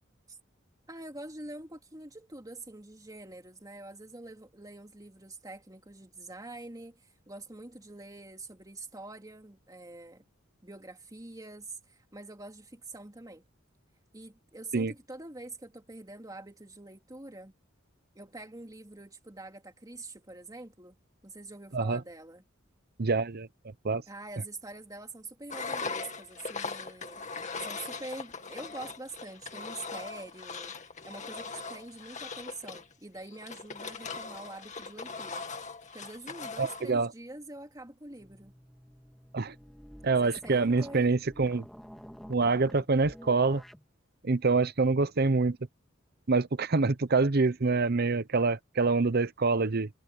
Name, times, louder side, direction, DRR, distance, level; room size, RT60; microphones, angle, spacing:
voice 1, 0.9-10.2 10.6-13.4 14.1-17.5 18.1-21.0 21.2-22.4 24.1-27.2 27.5-30.7 31.0-35.4 35.9-38.5 40.2-41.2, right 2 dB, 20° right, 2.8 m, -45 dB
voice 2, 23.0-23.5 23.8-24.0 36.6-37.1 39.3-39.5 40.0-41.6 42.3-43.6 44.2-45.6 46.3-49.9, right 3 dB, 50° right, 0.8 m, -26 dB
Engine, 25.5-36.9, left 4 dB, 40° left, 2.1 m, -40 dB
sound 1, 38.1-43.9, equal, ahead, 2.3 m, -50 dB
head